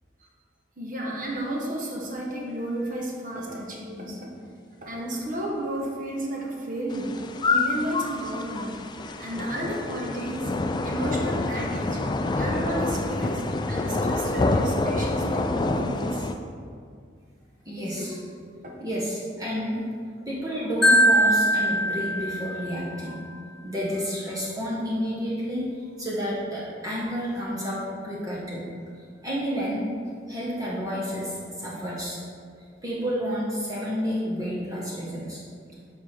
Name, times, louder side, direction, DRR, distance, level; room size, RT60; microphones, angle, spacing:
voice 1, 0.8-4.3 4.8-8.7 9.0-10.5 10.8-12.0 12.3-16.3 17.8-18.1 18.6-18.7, right 1 dB, 45° right, -1 dB, 1.0 m, -32 dB
sound 1, 6.9-16.3, left 2 dB, 25° left, 0.3 m, -27 dB
voice 2, 17.6-18.2 18.8-19.9 20.3-23.3 23.6-25.6 26.0-28.7 29.2-32.2 32.8-35.4, equal, 20° right, -6 dB, 1.0 m, -30 dB
Marimba xylophone, 20.8-22.9, equal, ahead, 1.0 m, -21 dB
6.9 x 4.7 x 4.3 m, 2.2 s
head